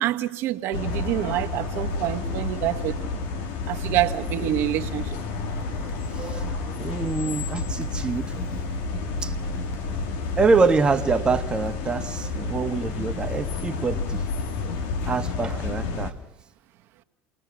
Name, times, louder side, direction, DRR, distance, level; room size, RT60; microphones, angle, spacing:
voice 1, 0.0-3.0 3.7-5.0, right 13 dB, 60° right, 1.2 m, -26 dB
sound 1, 0.7-16.1, left 3 dB, 70° left, 2.2 m, -30 dB
voice 2, 5.8-8.5 9.2-9.3 10.4-14.2 15.1-16.1, right 4 dB, 20° right, 1.4 m, -25 dB
29.0 x 19.5 x 6.2 m
supercardioid pair, 110°, 4 cm